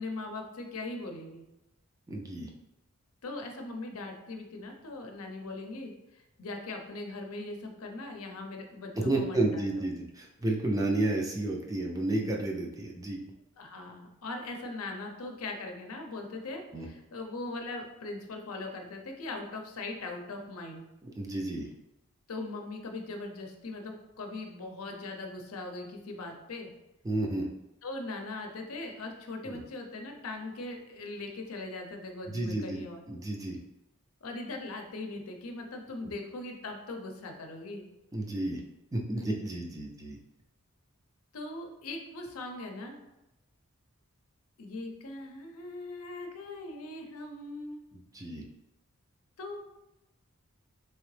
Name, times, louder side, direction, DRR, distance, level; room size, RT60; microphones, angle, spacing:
voice 1, 0.0-1.4 3.2-9.9 13.6-20.9 22.3-26.7 27.8-33.0 34.2-37.8 41.3-43.0 44.6-47.8 49.4-49.7, left 2 dB, 80° left, 3 dB, 0.6 m, -40 dB
voice 2, 2.1-2.5 9.0-13.2 16.7-16.9 21.2-21.7 27.0-27.5 29.5-29.6 32.3-32.8 33.1-33.6 36.0-36.1 38.1-38.6 38.9-40.2 48.1-48.4, right 2 dB, 15° right, 0 dB, 0.4 m, -31 dB
3.6 x 3.0 x 3.2 m, 0.94 s
head